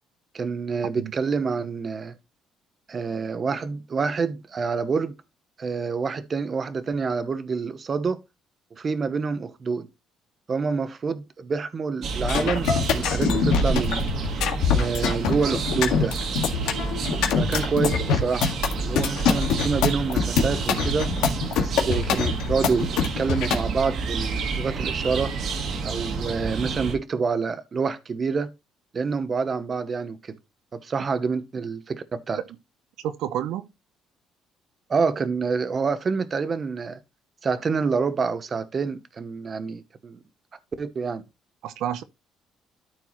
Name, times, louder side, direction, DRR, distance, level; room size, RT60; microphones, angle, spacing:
voice 1, 0.3-2.1 2.9-5.1 5.6-8.2 8.8-9.9 10.5-14.1 14.7-16.2 17.3-21.1 21.6-25.3 25.8-28.5 28.9-30.4 30.7-32.4 34.9-37.0 37.4-40.2 40.8-41.2, right 5 dB, 30° right, 0.9 m, -27 dB
sound 1, 12.0-27.0, right 4 dB, 60° right, 1.6 m, -30 dB
sound 2, 12.2-23.6, left 5 dB, 90° left, 1.8 m, -24 dB
voice 2, 33.0-33.7 41.6-42.0, right 10 dB, 80° right, 0.6 m, -29 dB
13.0 x 4.6 x 3.0 m
cardioid pair, 130°, 0 cm